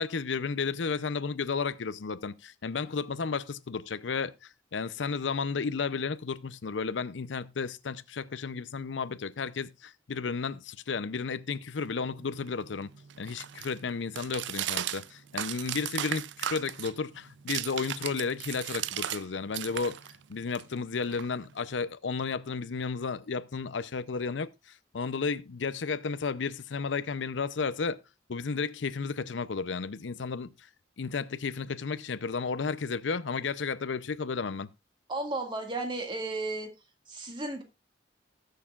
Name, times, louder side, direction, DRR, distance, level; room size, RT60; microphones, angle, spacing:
voice 1, 0.0-4.3 4.7-12.9 13.2-20.0 20.3-28.0 28.3-30.5 31.0-34.7, left 5 dB, 80° left, 0.6 m, -33 dB
sound 1, 11.9-19.2 19.5-21.7, right 11 dB, 70° right, 0.4 m, -37 dB
voice 2, 35.1-36.7 37.1-37.6, right 2 dB, 25° right, 1.9 m, -33 dB
19.0 x 6.6 x 2.4 m
head